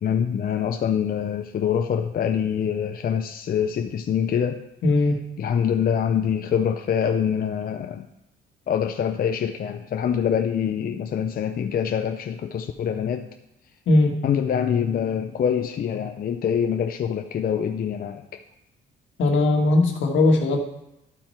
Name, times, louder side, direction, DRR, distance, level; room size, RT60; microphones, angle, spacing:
voice 1, 0.0-4.6 5.4-8.1 8.7-13.3 14.2-18.2, left 8 dB, 50° left, 5 dB, 0.5 m, -25 dB
voice 2, 4.8-5.2 13.9-14.1 19.2-20.6, left 2 dB, 75° left, 3 dB, 1.5 m, -19 dB
12.5 x 4.4 x 4.5 m, 0.88 s
cardioid pair, 90°, 20 cm